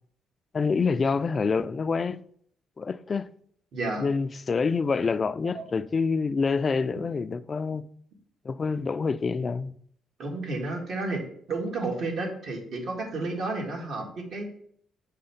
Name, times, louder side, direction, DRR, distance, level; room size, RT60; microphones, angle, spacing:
voice 1, 0.5-2.2 2.8-3.3 4.0-7.9 8.4-9.7, left 4 dB, 35° left, 0.3 m, -27 dB
voice 2, 3.7-4.1 5.4-5.6 6.9-7.1 10.2-11.2 11.5-14.4, right 2 dB, 65° right, 1.8 m, -31 dB
6.6 x 3.5 x 5.6 m
cardioid pair, 90°, 0 cm